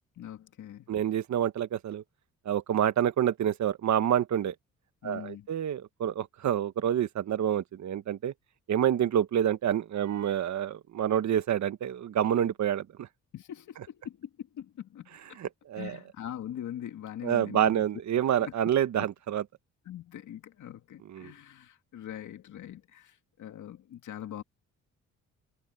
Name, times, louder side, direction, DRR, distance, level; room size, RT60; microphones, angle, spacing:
voice 1, 0.2-0.9 5.0-5.5 13.3-15.4 15.8-17.8 18.4-18.5 19.8-24.4, left 11 dB, 70° left, 2.3 m, -42 dB
voice 2, 0.9-2.0 2.4-4.5 5.0-8.3 8.7-13.1 15.4-15.9 17.2-19.4 21.1-21.3, right 10 dB, 60° right, 1.5 m, -28 dB
cardioid pair, 90°, 31 cm